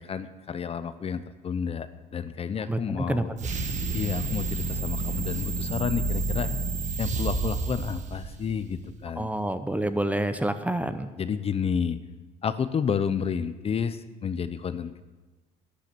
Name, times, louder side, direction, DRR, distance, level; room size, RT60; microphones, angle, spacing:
voice 1, 0.0-1.9 2.1-3.3 3.9-6.5 7.0-9.3 11.2-12.0 12.4-15.0, left 7 dB, 35° left, 12 dB, 0.7 m, -30 dB
voice 2, 2.7-3.2 9.2-11.1, right 1 dB, 10° right, 10 dB, 0.7 m, -28 dB
sound 1, 3.4-8.8, right 3 dB, 45° right, 1.6 m, -30 dB
11.5 x 10.5 x 6.8 m, 1.2 s
cardioid pair, 110°, 17 cm